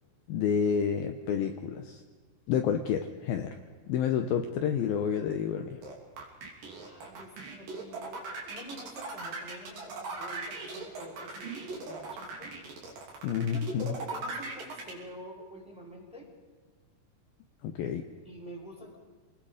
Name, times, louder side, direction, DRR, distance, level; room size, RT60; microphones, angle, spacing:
voice 1, 0.3-2.0 2.5-3.6 3.9-5.8 13.2-14.0 17.6-18.0, left 8 dB, 70° left, 6 dB, 2.5 m, -29 dB
sound 1, 5.8-14.9, right 3 dB, 55° right, 4.5 m, -39 dB
voice 2, 6.8-12.6 13.5-16.3 18.2-19.0, equal, ahead, -2 dB, 4.9 m, -47 dB
28.0 x 20.5 x 5.1 m, 1.4 s
omnidirectional pair, 4.8 m